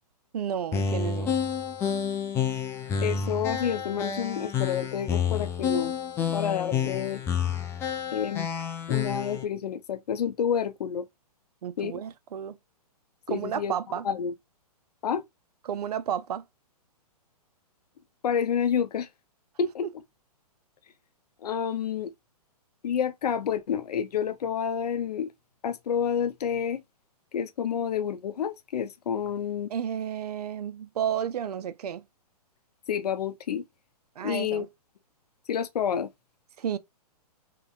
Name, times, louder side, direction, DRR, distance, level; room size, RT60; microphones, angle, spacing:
voice 1, 0.3-1.3 11.6-12.6 13.3-14.1 15.7-16.4 29.7-32.0 34.2-34.7 36.6-36.8, right 9 dB, 75° right, 0.5 m, -32 dB
sound 1, 0.7-9.4, left 7 dB, 15° left, 0.4 m, -29 dB
voice 2, 3.0-5.9 6.3-7.2 8.1-8.5 8.9-11.1 11.8-11.9 13.3-13.7 14.0-14.3 15.0-15.2 18.2-19.1 19.6-19.9 21.4-22.1 22.8-25.3 25.6-26.8 27.3-29.7 32.9-33.6 34.2-34.7 35.5-36.1, left 8 dB, 75° left, 0.6 m, -29 dB
2.9 x 2.6 x 2.3 m
hypercardioid pair, 135°, 20 cm